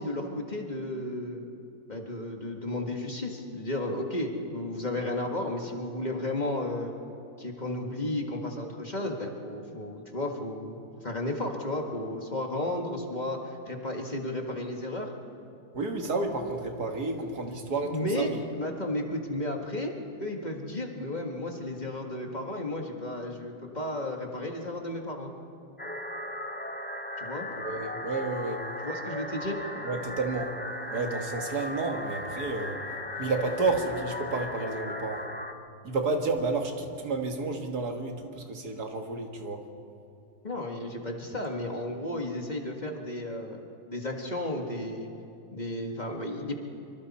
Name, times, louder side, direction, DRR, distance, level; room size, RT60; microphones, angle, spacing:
voice 1, 0.0-1.4 1.9-6.9 7.4-15.1 17.4-17.6 17.8-19.9 20.2-25.3 27.2-27.5 28.8-29.6 40.4-43.6 43.9-45.1 45.5-46.6, left 1 dB, 30° left, 1 dB, 1.8 m, -33 dB
voice 2, 15.7-18.4 27.6-28.6 29.8-30.5 30.8-32.8 33.2-35.3 35.8-39.7, right 3 dB, 80° right, 3 dB, 2.2 m, -31 dB
sound 1, 25.8-35.5, left 1 dB, 15° left, 0.4 m, -37 dB
25.5 x 25.0 x 4.3 m, 2.6 s
omnidirectional pair, 1.6 m